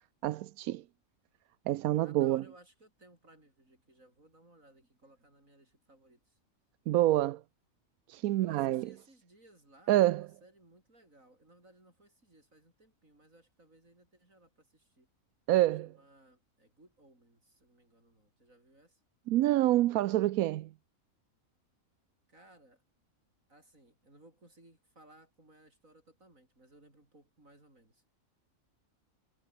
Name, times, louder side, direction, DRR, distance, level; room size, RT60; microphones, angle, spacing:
voice 1, 0.2-0.8 1.7-2.4 6.9-7.4 8.1-8.9 9.9-10.3 15.5-15.9 19.3-20.7, right 15 dB, 90° right, 1.0 m, -27 dB
voice 2, 2.0-6.4 8.4-15.1 15.8-19.0 22.3-22.8 23.5-28.1, right 1 dB, 70° right, 8.2 m, -61 dB
omnidirectional pair, 1.5 m